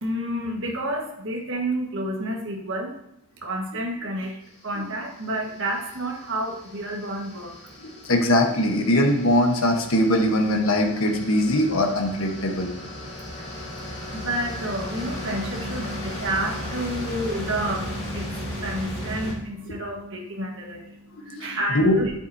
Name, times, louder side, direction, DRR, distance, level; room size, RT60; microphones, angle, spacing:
voice 1, 0.0-2.9 3.4-4.4 4.6-7.6 14.1-22.1, right 1 dB, 55° right, 0 dB, 1.6 m, -30 dB
sound 1, 4.6-19.3, left 1 dB, 25° left, 2.8 m, -36 dB
voice 2, 7.8-12.7 21.3-21.5 21.7-22.0, left 1 dB, 65° left, 2 dB, 1.3 m, -21 dB
9.7 x 7.8 x 2.8 m, 0.78 s
head